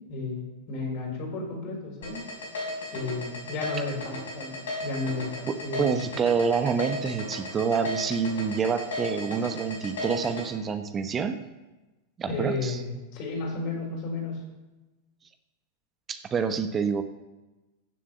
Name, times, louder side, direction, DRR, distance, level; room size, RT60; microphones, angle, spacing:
voice 1, 0.1-2.2 2.9-6.1 12.3-14.4, left 3 dB, 45° left, -1 dB, 4.5 m, -33 dB
sound 1, 2.0-10.4, left 2 dB, 65° left, 5.6 m, -35 dB
voice 2, 5.5-11.4 12.2-12.8 16.1-17.0, right 6 dB, 25° right, 9 dB, 1.0 m, -27 dB
15.5 x 7.4 x 6.9 m, 1.1 s
figure-of-eight pair, 90°, 0 cm